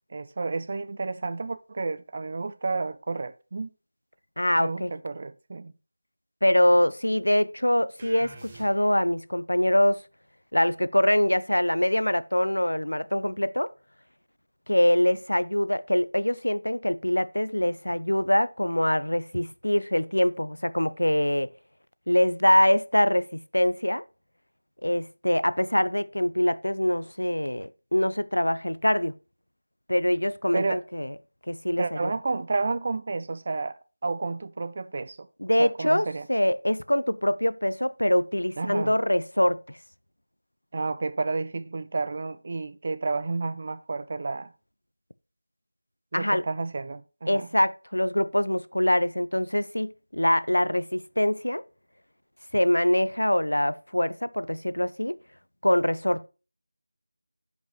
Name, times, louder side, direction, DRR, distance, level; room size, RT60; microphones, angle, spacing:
voice 1, 0.1-3.7 4.6-5.7 30.5-30.8 31.8-35.3 35.6-36.3 38.6-39.0 40.7-44.5 46.1-47.5, right 3 dB, 35° right, 0.4 m, -31 dB
voice 2, 4.4-4.9 6.4-10.0 10.5-13.7 14.7-21.5 22.1-24.0 24.8-29.1 29.9-31.1 31.5-32.1 35.4-39.8 46.1-46.4 47.3-51.6 52.5-55.1 55.6-56.3, left 1 dB, 85° left, 0.5 m, -24 dB
sound 1, 8.0-9.1, right 2 dB, 20° right, 1.1 m, -47 dB
10.5 x 5.2 x 3.0 m
figure-of-eight pair, 170°, 0 cm